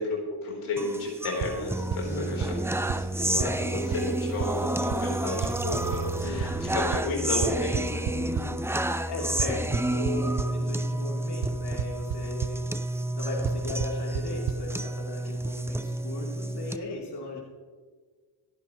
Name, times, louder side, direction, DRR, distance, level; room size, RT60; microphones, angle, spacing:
voice 1, 0.0-2.5 2.9-8.1 9.2-9.5 12.6-12.8 16.9-17.4, left 2 dB, 80° left, -3 dB, 4.1 m, -33 dB
sound 1, 0.8-16.8, right 1 dB, 5° right, 0.6 m, -30 dB
sound 2, 1.4-1.5 1.9-2.0 2.4-2.5 2.9-3.0 3.4-3.5 3.9-4.0 4.4-4.5 4.9-5.0 5.4-5.5 5.9-6.0 6.4-6.5 6.9-7.0 7.4-8.4 9.4-10.5 11.4-11.5 11.8-12.2 12.4-12.5 13.5-13.6 13.8-13.9 14.2-14.3 14.5-14.6, right 11 dB, 50° right, 0.8 m, -29 dB
voice 2, 2.0-2.6 6.2-6.6 8.1-8.7 9.1-17.4, left 2 dB, 55° left, -4 dB, 3.6 m, -37 dB
sound 3, 3.2-3.3 3.9-7.0, right 6 dB, 25° right, 1.3 m, -40 dB
26.5 x 9.2 x 3.2 m, 1.5 s
cardioid pair, 70°, 48 cm